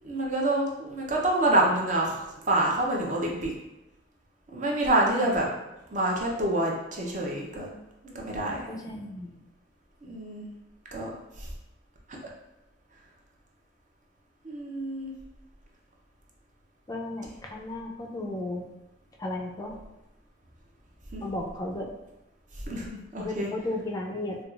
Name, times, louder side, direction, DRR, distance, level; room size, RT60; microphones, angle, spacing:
voice 1, 0.0-3.5 4.5-5.4 5.9-7.7 8.0-8.7 10.0-10.5 10.9-11.1 11.4-11.5 14.4-15.1 21.1-21.2 22.7-23.5, right 1 dB, 40° right, -1 dB, 0.6 m, -27 dB
voice 2, 5.1-5.5 8.7-9.3 16.9-18.7 19.2-19.8 21.2-21.9 23.2-24.4, left 2 dB, 20° left, 0 dB, 0.4 m, -34 dB
4.6 x 2.2 x 2.4 m, 0.97 s
head